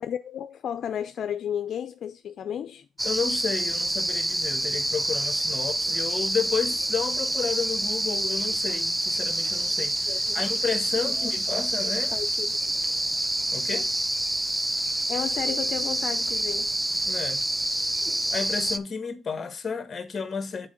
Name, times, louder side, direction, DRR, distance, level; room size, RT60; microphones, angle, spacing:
voice 1, 0.0-2.9 10.1-10.4 11.1-11.3 11.8-12.7 15.1-16.7, left 9 dB, 65° left, 0.4 m, -33 dB
voice 2, 3.0-12.1 13.5-13.9 17.1-17.4 18.3-20.7, left 5 dB, 35° left, 1.0 m, -32 dB
sound 1, 3.0-18.8, right 1 dB, 10° right, 0.4 m, -27 dB
6.1 x 4.3 x 5.1 m
cardioid pair, 90°, 0 cm